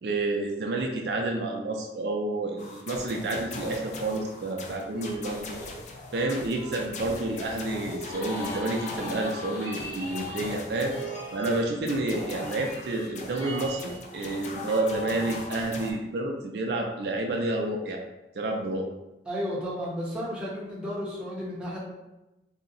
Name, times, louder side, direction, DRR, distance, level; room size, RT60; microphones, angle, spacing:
voice 1, 0.0-5.6 6.1-10.9 11.3-18.0 18.3-18.9, right 2 dB, 65° right, 1 dB, 0.4 m, -29 dB
sound 1, 2.6-15.9, left 3 dB, 40° left, 0.4 m, -41 dB
sound 2, 4.9-15.6, equal, 15° left, 1.0 m, -41 dB
voice 2, 19.3-21.8, equal, 5° right, -6 dB, 0.7 m, -33 dB
2.6 x 2.1 x 3.8 m, 0.98 s
head